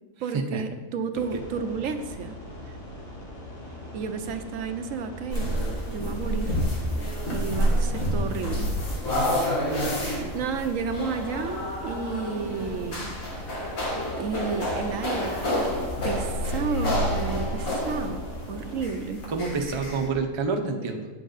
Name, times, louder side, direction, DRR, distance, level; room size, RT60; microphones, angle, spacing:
voice 1, 0.2-2.4 3.9-5.5 5.9-6.6 7.3-8.7 9.7-13.1 14.1-15.7 16.0-19.2, right 5 dB, 75° right, 8 dB, 1.0 m, -32 dB
sound 1, 1.1-18.8, left 1 dB, 45° left, 2.4 m, -41 dB
sound 2, 5.3-20.1, equal, 80° left, 2.1 m, -28 dB
voice 2, 19.3-21.1, right 4 dB, 30° right, 3 dB, 0.6 m, -28 dB
9.2 x 7.2 x 3.9 m, 1.2 s
omnidirectional pair, 1.4 m